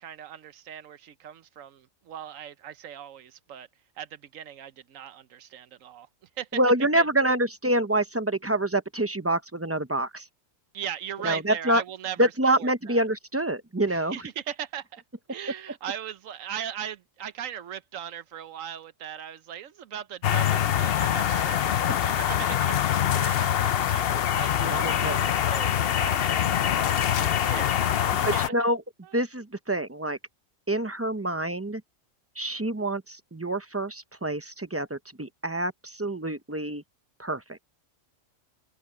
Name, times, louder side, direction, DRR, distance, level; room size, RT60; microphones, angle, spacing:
voice 1, 0.0-3.7 4.0-6.1 6.4-6.6 7.0-7.1 10.7-12.3 12.6-13.0 13.9-15.0 15.3-22.8 23.1-28.4 29.0-29.3, right 9 dB, 80° right, 1.1 m, -39 dB
voice 2, 6.5-10.3 11.2-11.8 12.2-14.2 24.6-25.2 28.2-28.8 29.1-30.2 30.7-31.8 32.4-36.8 37.2-37.6, right 1 dB, 15° right, 0.6 m, -26 dB
sound 1, 20.2-28.5, left 10 dB, 55° left, 0.8 m, -24 dB
omnidirectional pair, 1.4 m